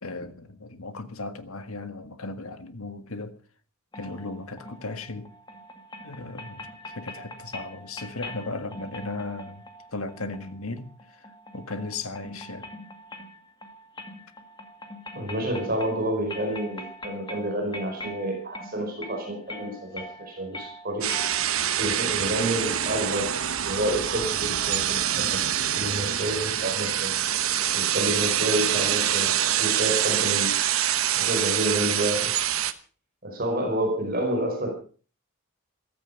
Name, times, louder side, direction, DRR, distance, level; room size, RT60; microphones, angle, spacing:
voice 1, 0.0-3.4 3.9-5.3 6.0-12.7, left 3 dB, 75° left, 1.7 m, -36 dB
sound 1, 3.9-21.8, left 1 dB, 20° left, 1.9 m, -43 dB
voice 2, 15.1-21.1 21.8-23.4 23.6-25.5 25.7-27.1 27.7-29.3 29.6-30.6 31.1-32.4 33.2-34.7, right 1 dB, 40° right, 4.9 m, -29 dB
sound 2, 21.0-32.7, right 10 dB, 70° right, 1.1 m, -25 dB
15.0 x 13.5 x 5.5 m
head